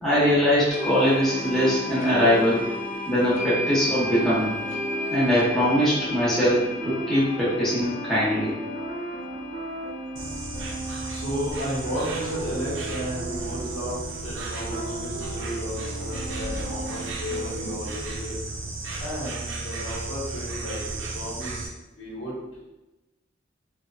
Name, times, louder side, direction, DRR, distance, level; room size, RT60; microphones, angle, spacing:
voice 1, 0.0-2.6 3.1-4.6 5.1-8.5, equal, 5° left, -11 dB, 0.8 m, -22 dB
sound 1, 0.7-12.3, left 1 dB, 35° left, 0.4 m, -34 dB
sound 2, 1.1-17.7, right 2 dB, 25° right, 0.6 m, -37 dB
Insect, 10.2-21.7, right 3 dB, 90° right, 0.4 m, -34 dB
voice 2, 11.1-18.4 19.0-20.8 21.1-21.7 22.0-22.3, equal, 75° left, -7 dB, 1.1 m, -33 dB
2.6 x 2.4 x 2.3 m, 1.0 s
head